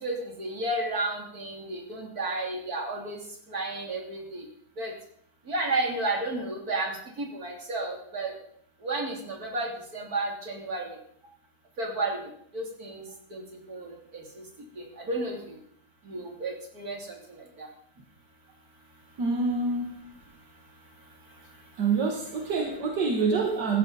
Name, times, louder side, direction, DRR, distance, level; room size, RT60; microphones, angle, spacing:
voice 1, 0.0-3.2 3.5-4.4 4.8-4.9 5.5-6.9 7.2-8.3 8.8-9.7 9.9-10.9 11.8-12.2 12.5-13.0 13.3-13.4 13.7-13.9 15.1-15.4 16.1-17.0, right 2 dB, 60° right, 0 dB, 3.5 m, -31 dB
voice 2, 19.2-20.1 21.8-23.8, right 4 dB, 80° right, 1 dB, 2.2 m, -26 dB
16.0 x 14.5 x 4.0 m, 0.66 s
omnidirectional pair, 1.8 m